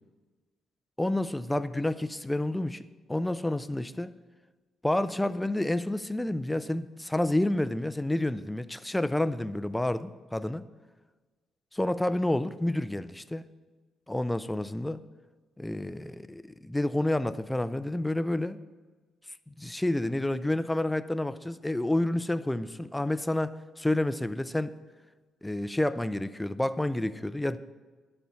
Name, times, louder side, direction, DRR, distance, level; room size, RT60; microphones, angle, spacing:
voice 1, 1.0-4.2 4.8-10.6 11.7-13.4 14.1-15.0 15.6-18.6 19.6-24.7 25.4-27.6, left 1 dB, 10° left, 14 dB, 0.4 m, -29 dB
11.5 x 4.4 x 6.9 m, 1.4 s
cardioid pair, 90°, 0 cm